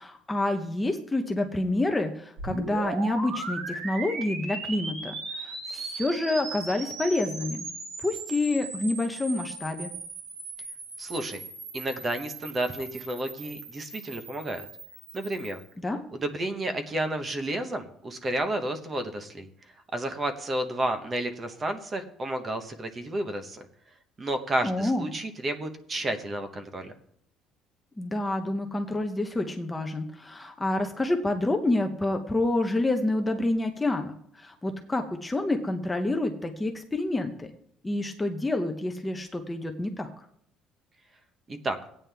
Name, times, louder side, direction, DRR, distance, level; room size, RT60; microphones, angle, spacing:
voice 1, 0.0-7.7 8.0-9.9 15.8-16.0 24.6-25.1 28.0-34.1 34.4-37.5 37.8-40.1, left 2 dB, 10° left, 4 dB, 0.7 m, -28 dB
sound 1, 2.4-15.7, right 3 dB, 65° right, 3.5 m, -38 dB
voice 2, 11.0-11.4 11.7-14.7 15.1-15.6 16.1-19.5 19.9-23.6 24.2-26.9 41.5-41.8, right 1 dB, 20° right, 8 dB, 0.9 m, -31 dB
16.0 x 9.1 x 3.4 m, 0.68 s
cardioid pair, 175°, 0 cm